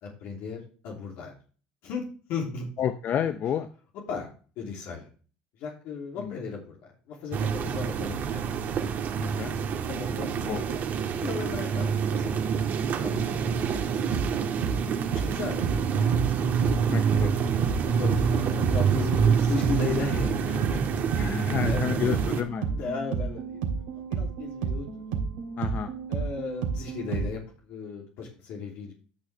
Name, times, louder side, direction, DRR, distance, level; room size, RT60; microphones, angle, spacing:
voice 1, 0.0-1.3 1.8-2.0 2.3-2.7 4.1-4.3 4.6-5.1 5.6-8.4 9.9-10.8 11.2-12.4 13.0-13.6 15.0-16.3 17.8-21.0 21.6-22.0 22.7-23.6 24.1-24.9 26.1-28.9, left 4 dB, 65° left, -1 dB, 3.0 m, -35 dB
voice 2, 2.8-3.7 6.2-6.3 9.2-9.5 10.5-10.6 13.7-13.8 16.9-17.3 21.2-22.7 25.6-25.9, left 9 dB, 50° left, 9 dB, 0.8 m, -30 dB
sound 1, 7.3-22.4, right 7 dB, 50° right, 1.9 m, -27 dB
sound 2, 13.7-27.3, right 6 dB, 80° right, 2.9 m, -32 dB
12.5 x 6.4 x 3.4 m, 0.39 s
supercardioid pair, 85°, 4 cm